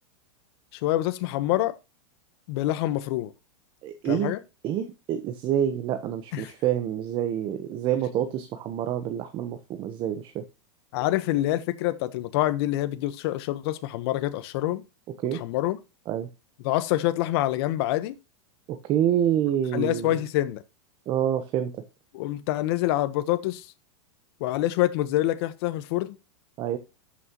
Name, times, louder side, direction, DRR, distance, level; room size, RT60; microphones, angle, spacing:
voice 1, 0.7-1.7 2.5-3.3 4.0-4.4 6.3-6.5 10.9-14.8 15.3-15.8 16.6-18.1 19.7-20.6 22.1-23.7 24.4-26.2, left 15 dB, 55° left, 1.2 m, -26 dB
voice 2, 3.8-4.4 4.6-10.4 15.2-15.4 16.1-16.3 18.7-20.2 21.1-21.7 26.6-26.8, right 10 dB, 35° right, 1.1 m, -27 dB
12.5 x 6.4 x 3.0 m
supercardioid pair, 145°, 16 cm